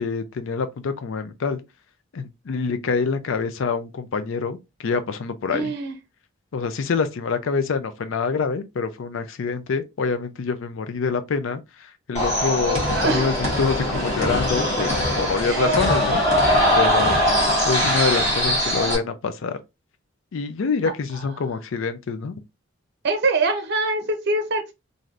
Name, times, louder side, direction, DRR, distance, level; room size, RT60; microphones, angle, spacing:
voice 1, 0.0-1.6 2.1-4.6 4.8-5.7 6.5-16.2 16.8-17.3 17.6-19.6 20.3-22.3, left 5 dB, 75° left, 0.4 m, -26 dB
voice 2, 5.5-5.9 12.9-13.3 15.4-15.8 23.0-24.7, right 3 dB, 55° right, 0.6 m, -24 dB
sound 1, 12.1-18.9, equal, 35° left, 1.4 m, -21 dB
3.2 x 2.6 x 2.4 m
head